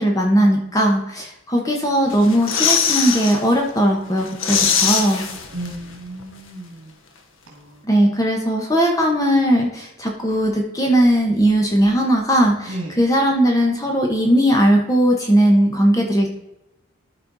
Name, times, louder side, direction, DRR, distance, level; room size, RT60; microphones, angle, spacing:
voice 1, 0.0-5.3 7.8-16.3, equal, 15° left, 1 dB, 1.0 m, -18 dB
sound 1, 2.1-3.4 3.8-3.9 4.2-5.9 6.2-6.3, left 7 dB, 70° left, 0.9 m, -21 dB
voice 2, 5.5-6.8 7.5-7.7 12.7-12.9, right 1 dB, 75° right, -2 dB, 2.1 m, -33 dB
12.5 x 4.3 x 4.0 m, 0.89 s
head